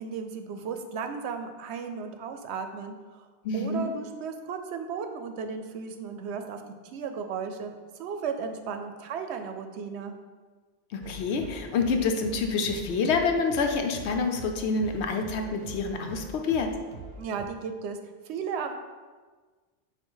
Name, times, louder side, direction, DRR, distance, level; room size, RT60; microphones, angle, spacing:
voice 1, 0.0-3.3 3.5-6.6 6.9-10.1 17.2-18.0 18.3-18.7, right 5 dB, 90° right, 7 dB, 0.9 m, -35 dB
voice 2, 3.4-3.8 10.9-16.7, left 4 dB, 85° left, 5 dB, 0.9 m, -27 dB
sound 1, 11.0-17.5, right 3 dB, 55° right, 0.8 m, -43 dB
6.9 x 2.5 x 5.5 m, 1.4 s
omnidirectional pair, 1.1 m